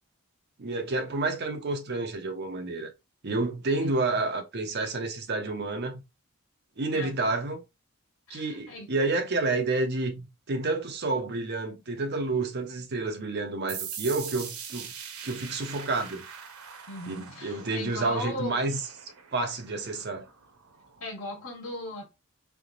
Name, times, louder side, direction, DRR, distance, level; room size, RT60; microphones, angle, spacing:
voice 1, 0.6-2.9 3.2-6.0 6.8-7.6 8.3-14.9 15.2-16.2 17.1-18.8 19.3-20.3, right 3 dB, 50° right, 0.7 m, -29 dB
voice 2, 8.3-8.9 16.9-18.7 21.0-22.0, left 2 dB, 75° left, 1.4 m, -37 dB
sound 1, 13.7-21.1, right 7 dB, 85° right, 0.8 m, -42 dB
3.4 x 2.9 x 2.4 m
head